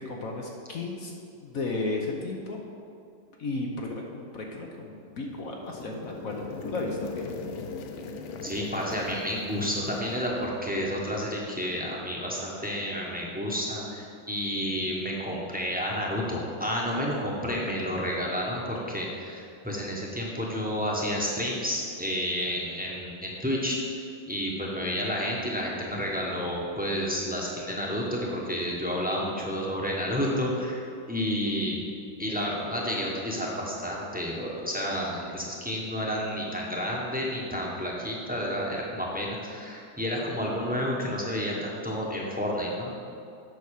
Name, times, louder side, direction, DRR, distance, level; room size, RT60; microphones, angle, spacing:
voice 1, 0.0-1.1 1.4-2.6 3.4-7.3, left 2 dB, 55° left, 0 dB, 1.1 m, -34 dB
sound 1, 5.0-11.1, left 4 dB, 90° left, 1.6 m, -40 dB
voice 2, 8.4-23.8 24.3-30.8 31.1-31.9 32.2-42.9, equal, 5° right, -3 dB, 1.1 m, -30 dB
8.3 x 5.9 x 6.6 m, 2.5 s
omnidirectional pair, 2.1 m